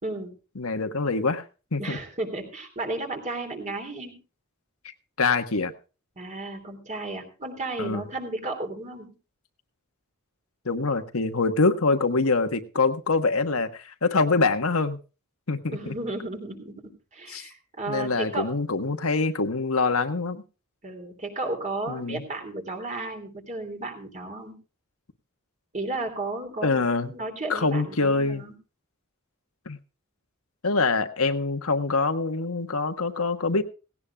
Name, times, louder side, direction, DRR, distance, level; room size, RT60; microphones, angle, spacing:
voice 1, 0.5-1.4 1.7-2.0 5.2-5.7 7.8-8.0 10.6-15.0 15.5-15.9 17.3-17.5 17.9-20.4 21.9-22.2 26.6-27.1 27.5-28.4 29.6-29.8 30.6-33.6, left 3 dB, 75° left, 7 dB, 1.4 m, -25 dB
voice 2, 1.8-4.2 6.2-9.1 15.7-18.5 20.8-24.6 25.7-28.5, right 2 dB, 35° right, 4 dB, 3.3 m, -34 dB
17.5 x 17.0 x 2.4 m, 0.34 s
head